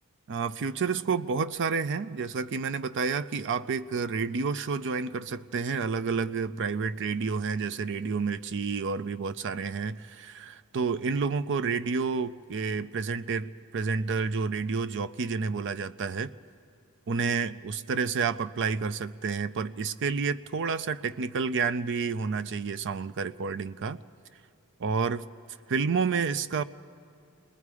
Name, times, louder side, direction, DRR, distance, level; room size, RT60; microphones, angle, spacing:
voice 1, 0.3-16.3 17.1-24.0 24.8-25.3 25.7-26.6, right 5 dB, 55° right, 14 dB, 0.5 m, -30 dB
28.5 x 20.5 x 4.8 m, 2.6 s
head